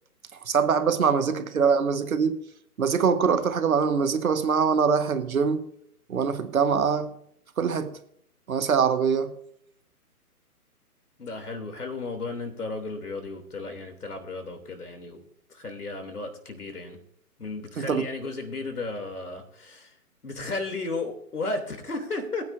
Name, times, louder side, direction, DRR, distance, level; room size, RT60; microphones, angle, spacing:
voice 1, 0.5-2.4 2.8-5.6 6.1-7.1 7.6-7.9 8.5-9.3 17.8-18.1, right 6 dB, 65° right, 1.5 m, -23 dB
voice 2, 11.2-15.2 15.5-17.0 17.4-19.9 20.2-22.4, left 3 dB, 80° left, 3.1 m, -34 dB
19.5 x 9.4 x 2.7 m
figure-of-eight pair, 135°, 45 cm